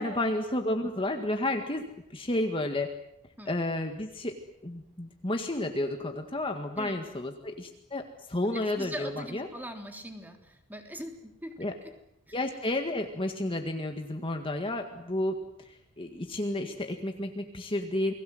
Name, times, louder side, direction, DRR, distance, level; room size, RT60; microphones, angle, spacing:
voice 1, 0.0-2.9 3.5-4.3 4.6-9.5 11.6-11.7 12.3-18.1, left 1 dB, 25° left, 5 dB, 1.9 m, -31 dB
voice 2, 8.5-11.9 12.3-12.4, equal, 10° right, 4 dB, 3.5 m, -41 dB
29.5 x 21.0 x 7.9 m, 0.79 s
head